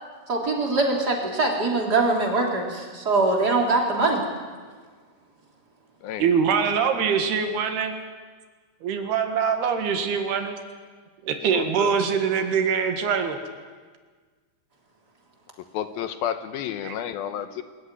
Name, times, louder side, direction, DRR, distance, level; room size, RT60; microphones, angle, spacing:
voice 1, 0.3-4.2, right 3 dB, 25° right, 0 dB, 3.4 m, -23 dB
voice 2, 6.2-7.9 8.8-10.6 11.2-13.4 16.8-17.0, right 6 dB, 80° right, 6 dB, 3.7 m, -23 dB
voice 3, 11.5-11.9 15.7-17.6, left 10 dB, 75° left, 10 dB, 2.5 m, -31 dB
23.5 x 14.5 x 9.8 m, 1.5 s
omnidirectional pair, 4.6 m